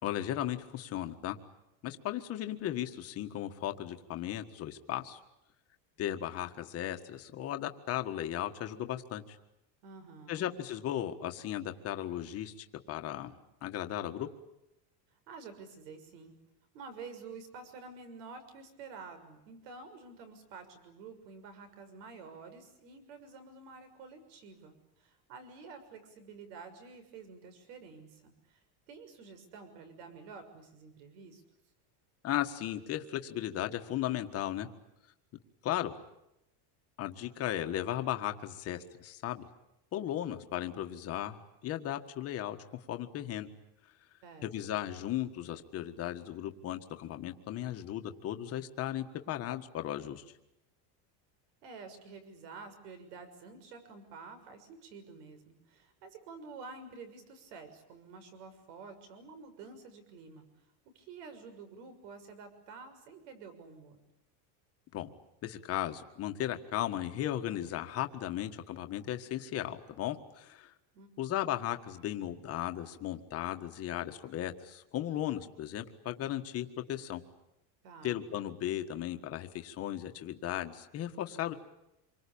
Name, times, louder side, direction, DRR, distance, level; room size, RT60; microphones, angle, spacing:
voice 1, 0.0-1.4 1.8-5.2 6.0-9.4 10.3-13.3 13.6-14.3 32.2-34.7 35.6-35.9 37.0-39.5 39.9-42.6 42.9-43.5 44.4-50.2 64.9-65.1 65.4-70.7 71.2-77.2 78.0-81.5, left 12 dB, 30° left, 7 dB, 1.6 m, -36 dB
voice 2, 9.8-10.5 15.3-16.3 16.7-31.4 44.2-44.8 51.6-60.4 60.8-64.0 70.9-71.3 77.8-78.2, right 4 dB, 75° right, 9 dB, 6.6 m, -50 dB
27.5 x 24.0 x 8.7 m, 0.88 s
cardioid pair, 175°, 48 cm